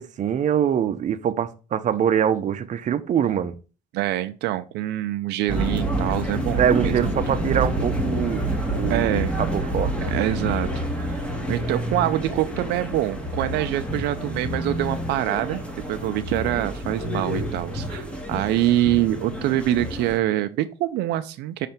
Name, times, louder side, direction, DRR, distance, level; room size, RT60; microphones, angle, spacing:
voice 1, 0.0-3.5 6.6-10.1, right 9 dB, 45° right, 0.7 m, -24 dB
voice 2, 3.9-6.9 8.9-9.4 10.1-10.7 11.0-15.6 15.9-21.7, right 14 dB, 85° right, 0.5 m, -25 dB
sound 1, 5.5-20.2, right 1 dB, 5° left, 1.5 m, -28 dB
6.5 x 3.3 x 5.9 m
cardioid pair, 110°, 17 cm